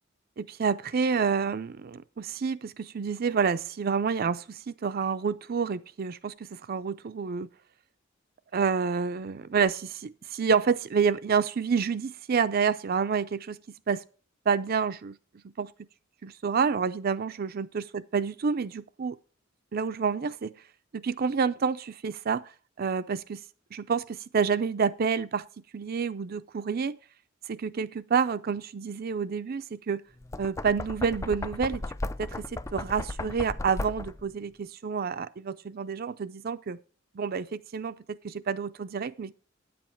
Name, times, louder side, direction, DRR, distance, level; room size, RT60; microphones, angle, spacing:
voice 1, 0.4-7.5 8.5-13.6 13.9-14.0 14.5-15.2 15.6-15.7 16.2-19.2 19.7-20.5 20.9-22.5 22.8-23.4 23.7-25.5 25.7-27.0 27.5-30.0 30.4-31.8 32.2-36.8 37.1-38.0 38.2-39.3, right 6 dB, 50° right, 0.5 m, -28 dB
Knock, 30.2-34.3, left 2 dB, 15° left, 0.3 m, -36 dB
9.2 x 7.7 x 4.5 m
head